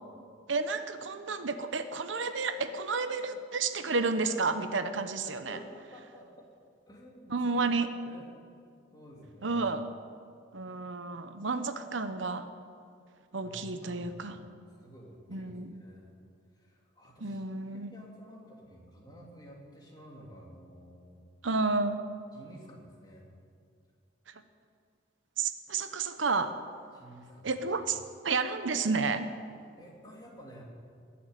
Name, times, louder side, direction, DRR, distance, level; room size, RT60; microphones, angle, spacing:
voice 1, 0.5-5.6 7.3-7.9 9.4-9.9 10.5-12.5 13.3-14.4 15.3-15.8 17.2-17.9 21.4-22.0 25.4-26.6 27.4-28.0 28.2-29.3, right 4 dB, 85° right, 9 dB, 0.9 m, -31 dB
voice 2, 5.2-6.5 6.9-7.7 8.0-8.2 8.9-9.6 13.4-14.4 14.8-16.2 16.5-17.4 17.7-21.2 22.3-23.3 26.9-27.5 27.8-27.9 29.8-30.6, equal, 20° left, -2 dB, 2.8 m, -51 dB
21.0 x 7.2 x 9.0 m, 2.3 s
head